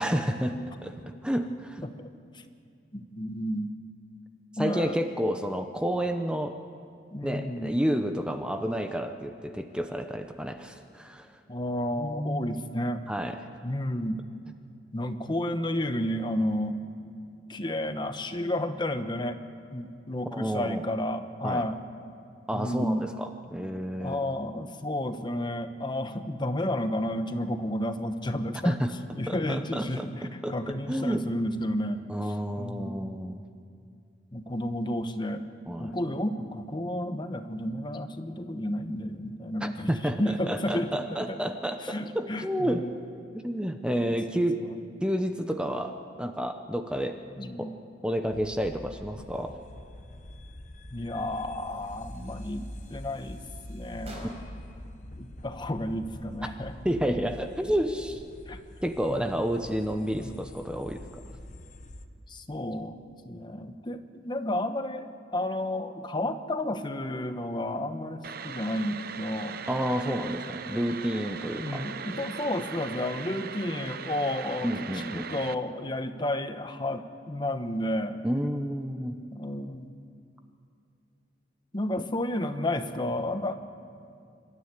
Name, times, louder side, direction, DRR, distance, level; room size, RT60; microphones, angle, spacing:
voice 1, 0.0-1.8 4.6-6.6 7.2-11.3 13.1-13.4 20.3-20.8 21.4-21.7 22.5-24.2 28.6-28.9 29.3-31.3 32.1-33.4 35.7-36.0 39.6-42.9 43.3-44.6 45.0-47.2 47.6-47.7 48.0-49.6 56.8-58.2 58.8-61.2 69.7-72.0 74.6-75.3 78.2-79.2, equal, 5° right, 6 dB, 0.8 m, -30 dB
voice 2, 2.9-3.7 4.6-5.0 7.1-7.7 11.5-13.0 13.6-14.2 14.9-16.8 17.5-19.4 19.7-21.8 22.5-23.1 24.0-28.7 29.1-32.0 32.6-33.1 34.3-35.4 35.8-39.9 40.2-40.9 41.3-41.4 41.8-42.8 44.1-44.8 47.4-47.7 50.9-53.4 53.7-54.3 55.1-56.7 58.5-58.6 59.1-59.3 60.2-60.3 62.3-69.6 71.6-74.7 75.0-78.2 79.3-79.9 81.7-83.5, left 1 dB, 25° left, 8 dB, 1.1 m, -31 dB
sound 1, 48.3-62.1, left 1 dB, 45° left, 1.1 m, -45 dB
sound 2, 51.6-54.7, right 1 dB, 35° right, 4.8 m, -51 dB
sound 3, 68.2-75.5, right 5 dB, 55° right, 0.8 m, -39 dB
26.5 x 13.0 x 9.7 m, 2.4 s
head